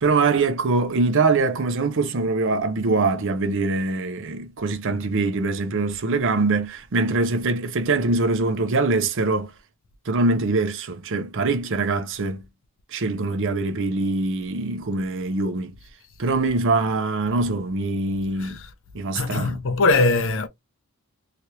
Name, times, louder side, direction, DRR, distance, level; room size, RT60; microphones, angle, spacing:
voice 1, 0.0-9.5 10.1-12.5 12.9-15.8 16.2-18.6 18.9-19.6, right 3 dB, 60° right, 0.6 m, -23 dB
voice 2, 19.2-20.5, left 3 dB, 60° left, 0.6 m, -20 dB
2.9 x 2.5 x 3.0 m
head